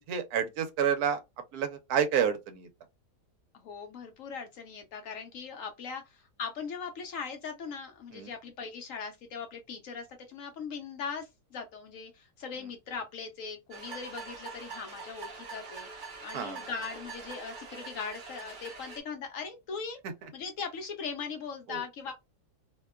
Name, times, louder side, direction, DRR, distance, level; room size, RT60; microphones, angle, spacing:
voice 1, 0.1-1.2 1.5-2.7 8.1-8.3 16.3-16.6 21.7-21.8, right 8 dB, 75° right, 1.1 m, -29 dB
voice 2, 3.5-20.0 20.3-22.1, left 5 dB, 65° left, 0.9 m, -40 dB
sound 1, 13.7-19.0, right 4 dB, 45° right, 0.6 m, -44 dB
2.8 x 2.2 x 2.2 m
omnidirectional pair, 1.7 m